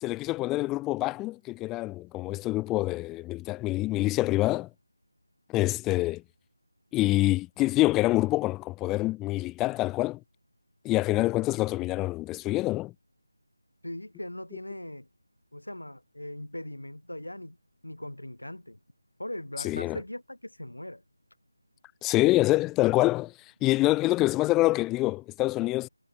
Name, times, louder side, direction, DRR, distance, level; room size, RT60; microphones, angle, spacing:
voice 1, 0.0-4.7 5.5-6.2 6.9-10.2 10.8-12.9 19.6-20.0 22.0-25.9, left 18 dB, 10° left, 0.3 m, -26 dB
voice 2, 13.8-15.1 15.5-17.6 17.8-18.8 19.2-21.0, left 1 dB, 80° left, 3.4 m, -39 dB
figure-of-eight pair, 165°, 0 cm